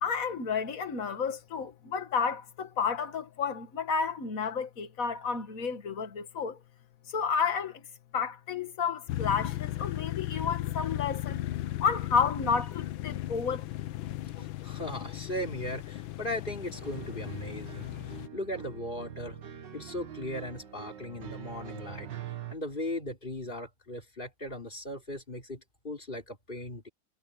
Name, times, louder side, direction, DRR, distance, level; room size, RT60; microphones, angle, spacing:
voice 1, 0.0-6.6 7.1-7.8 8.1-11.4 11.8-13.7 14.4-14.5, left 6 dB, 45° left, 2.1 m, -31 dB
sound 1, 9.1-18.3, left 15 dB, 85° left, 1.6 m, -36 dB
voice 2, 14.4-17.9 18.3-19.4 19.7-22.1 22.5-26.9, left 1 dB, 25° left, 3.8 m, -38 dB
sound 2, 16.7-22.5, right 10 dB, 70° right, 2.2 m, -44 dB
omnidirectional pair, 2.1 m